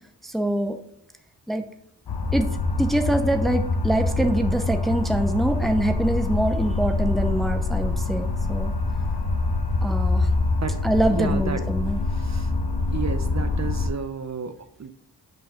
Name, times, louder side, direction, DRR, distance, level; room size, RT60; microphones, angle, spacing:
voice 1, 0.2-0.8 1.5-1.6 2.3-2.5 2.8-8.7 9.8-10.3 10.8-12.0, right 1 dB, ahead, 6 dB, 0.6 m, -24 dB
sound 1, 2.1-13.9, left 3 dB, 70° left, 1.1 m, -25 dB
voice 2, 11.1-11.6 12.1-12.5 12.9-14.9, right 5 dB, 45° right, 9 dB, 0.6 m, -32 dB
5.8 x 5.2 x 3.6 m, 0.74 s
wide cardioid pair, 105°, 40 cm